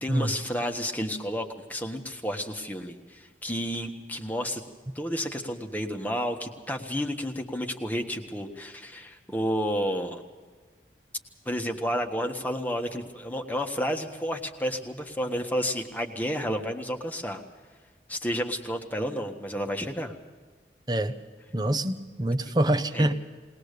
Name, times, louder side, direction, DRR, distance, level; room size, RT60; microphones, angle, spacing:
voice 1, 0.0-4.6 4.9-10.2 11.4-17.4 18.1-20.1 22.9-23.1, equal, 10° left, 3 dB, 1.5 m, -31 dB
voice 2, 21.5-23.1, right 1 dB, 20° right, 9 dB, 1.0 m, -25 dB
21.0 x 19.5 x 6.8 m, 1.4 s
head